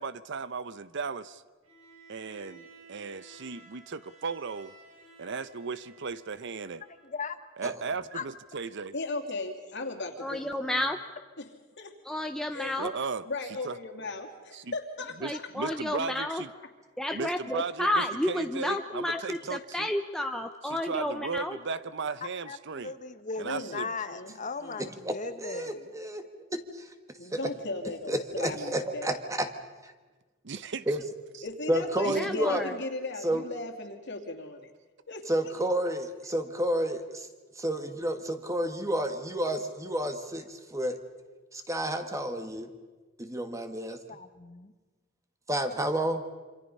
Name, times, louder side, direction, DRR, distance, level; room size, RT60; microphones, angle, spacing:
voice 1, 0.0-1.4 2.1-4.7 5.2-6.8 7.6-8.9 12.8-13.3 13.6-13.8 14.5-14.7 15.2-16.5 17.1-19.9 20.7-22.9 23.4-23.9 30.4-30.9 32.0-32.2, right 4 dB, 60° right, 15 dB, 0.8 m, -36 dB
Bowed string instrument, 1.6-7.2, right 3 dB, 85° right, 6.2 m, -55 dB
voice 2, 7.0-7.4 8.1-8.2 22.4-25.9 43.9-44.7, left 4 dB, 40° left, 10 dB, 1.2 m, -38 dB
voice 3, 8.9-10.9 11.4-11.5 11.8-11.9 12.5-12.8 13.2-15.8 17.2-17.4 23.4-23.7 24.1-24.3 24.6-24.9 27.2-29.1 31.4-34.7 35.1-35.5, left 2 dB, 60° left, 4 dB, 2.7 m, -37 dB
voice 4, 10.2-11.0 12.0-12.9 15.2-16.4 17.0-21.6 32.1-32.8, left 1 dB, 5° left, 5 dB, 0.7 m, -31 dB
voice 5, 24.8-26.2 26.5-26.9 27.3-27.4 28.1-29.5 29.8-29.9 30.9-31.0 31.7-32.6 33.2-33.4 35.3-37.3 37.5-41.0 41.5-42.7 43.2-44.0 45.5-46.2, right 1 dB, 15° right, 7 dB, 1.7 m, -30 dB
27.0 x 26.0 x 5.5 m, 1.3 s
head